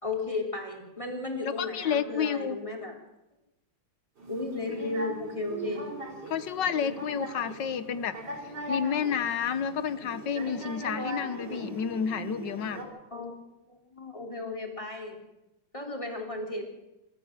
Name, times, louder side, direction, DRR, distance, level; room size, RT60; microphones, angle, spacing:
voice 1, 0.0-2.9 4.3-5.9 13.1-13.4 13.7-15.2 15.7-16.6, left 2 dB, 15° left, 2 dB, 3.6 m, -34 dB
voice 2, 1.4-2.6 6.3-8.1 8.7-12.8, left 7 dB, 60° left, 14 dB, 1.5 m, -30 dB
sound 1, 4.2-12.8, right 1 dB, 50° right, 4.4 m, -39 dB
26.0 x 13.5 x 7.6 m, 0.95 s
omnidirectional pair, 2.3 m